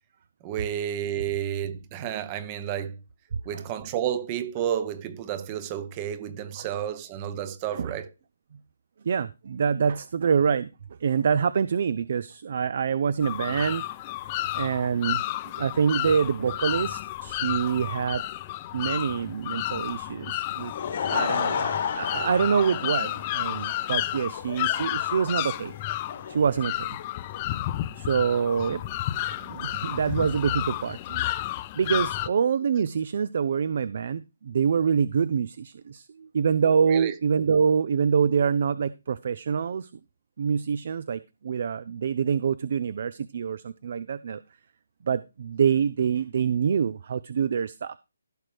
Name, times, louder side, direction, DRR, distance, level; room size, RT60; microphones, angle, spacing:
voice 1, 0.4-3.0 3.4-8.1 36.9-37.1, right 10 dB, 20° right, 0.8 m, -31 dB
voice 2, 9.0-10.7 11.0-13.8 14.5-15.2 15.6-18.2 18.7-20.7 21.1-25.7 26.3-27.0 28.0-28.8 29.4-39.9 40.4-44.4 45.0-48.0, right 6 dB, 45° right, 0.4 m, -26 dB
sound 1, 13.2-32.3, left 15 dB, 20° left, 0.4 m, -32 dB
Laughter / Crowd, 20.5-27.4, left 7 dB, 35° left, 1.2 m, -33 dB
15.0 x 6.1 x 3.3 m
hypercardioid pair, 170°, 0 cm